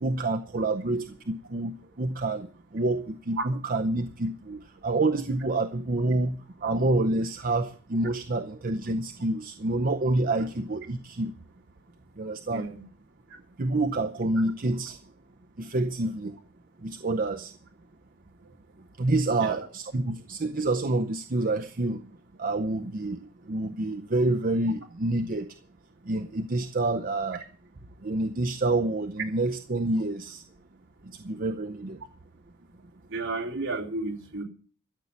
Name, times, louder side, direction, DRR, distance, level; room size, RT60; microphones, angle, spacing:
voice 1, 0.0-2.5 2.7-11.3 12.2-12.6 13.6-15.0 15.6-16.3 16.8-17.5 19.0-22.1 22.4-23.2 23.5-25.5 26.1-27.4 28.0-30.4 31.1-32.0, right 2 dB, 40° right, 6 dB, 0.7 m, -28 dB
voice 2, 12.5-12.8 19.4-19.7 33.1-34.4, right 3 dB, 60° right, 0 dB, 3.3 m, -33 dB
13.5 x 7.2 x 8.2 m, 0.43 s
head